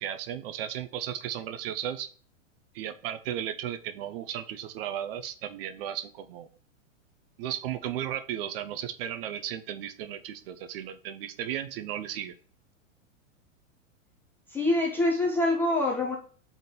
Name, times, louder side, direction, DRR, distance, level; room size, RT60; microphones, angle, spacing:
voice 1, 0.0-2.1 2.7-6.5 7.4-12.3, right 10 dB, 50° right, 10 dB, 0.5 m, -35 dB
voice 2, 14.5-16.2, left 2 dB, 5° left, -2 dB, 0.4 m, -25 dB
3.7 x 3.5 x 4.0 m, 0.41 s
supercardioid pair, 145°, 39 cm